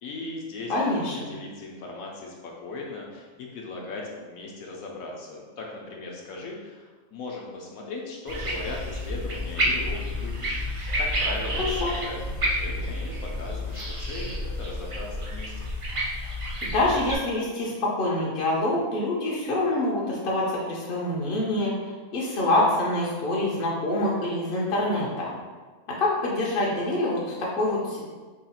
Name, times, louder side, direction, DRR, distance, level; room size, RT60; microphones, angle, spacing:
voice 1, 0.0-10.6 11.0-15.5, left 3 dB, 75° left, -1 dB, 1.1 m, -38 dB
voice 2, 0.7-1.3 11.6-11.9 16.6-21.7 22.1-25.3 26.0-28.1, left 1 dB, 50° left, -5 dB, 0.7 m, -26 dB
sound 1, 8.3-17.2, equal, 55° right, 0.3 m, -30 dB
3.7 x 2.4 x 4.2 m, 1.4 s
omnidirectional pair, 1.5 m